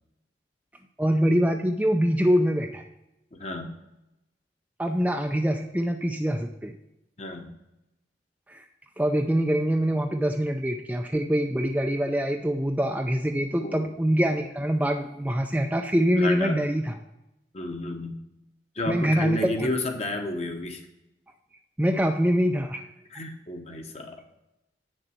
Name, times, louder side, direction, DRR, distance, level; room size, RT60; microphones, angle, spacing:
voice 1, 1.0-2.8 4.8-6.7 8.5-8.6 9.0-16.9 18.9-19.7 21.8-22.9, equal, 10° right, 4 dB, 0.4 m, -24 dB
voice 2, 3.4-3.7 7.2-7.5 13.5-13.9 16.2-16.6 17.5-18.2 18.7-20.9 23.1-24.2, left 2 dB, 35° left, 5 dB, 1.0 m, -32 dB
8.7 x 6.7 x 4.4 m, 0.91 s
head